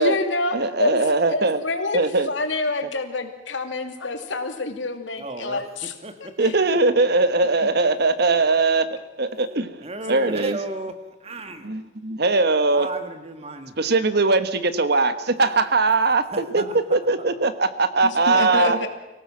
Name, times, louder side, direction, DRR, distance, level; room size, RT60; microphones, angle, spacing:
voice 1, 0.0-1.0 1.3-5.9 6.2-6.5 16.6-16.7 18.0-18.9, left 2 dB, 80° left, 6 dB, 2.6 m, -27 dB
voice 2, 0.5-1.6 1.9-2.3 6.4-8.9 9.2-9.8 10.1-10.6 11.6-12.9 13.8-16.6 16.9-18.8, right 3 dB, 60° right, 12 dB, 1.5 m, -20 dB
voice 3, 5.2-6.3 6.7-6.8 8.3-8.4 9.8-10.9 11.2-11.7 12.7-13.7 15.3-15.7 16.3-17.3, right 2 dB, 35° right, 8 dB, 1.8 m, -35 dB
24.5 x 17.5 x 7.4 m, 1.1 s
head